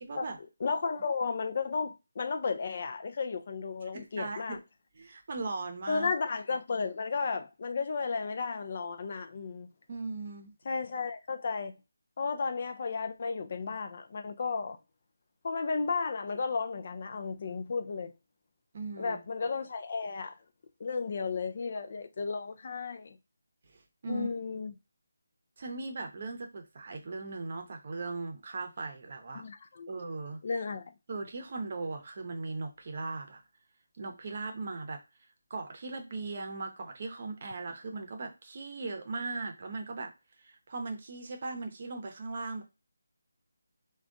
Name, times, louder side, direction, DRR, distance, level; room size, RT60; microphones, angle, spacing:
voice 1, 0.0-0.4 3.9-4.6 4.9-6.1 9.9-10.5 18.7-19.2 23.7-24.3 25.6-29.4 29.9-30.4 31.1-33.4 34.0-35.0 35.5-40.1 40.4-42.6, right 3 dB, 45° right, 0.7 m, -38 dB
voice 2, 0.6-4.6 5.9-9.7 10.7-11.7 12.2-14.8 15.4-18.1 19.0-20.4 20.8-23.2 24.1-24.7 29.3-29.9 30.4-30.8, left 4 dB, 45° left, 0.3 m, -33 dB
3.3 x 2.3 x 2.5 m
figure-of-eight pair, 160°, 0 cm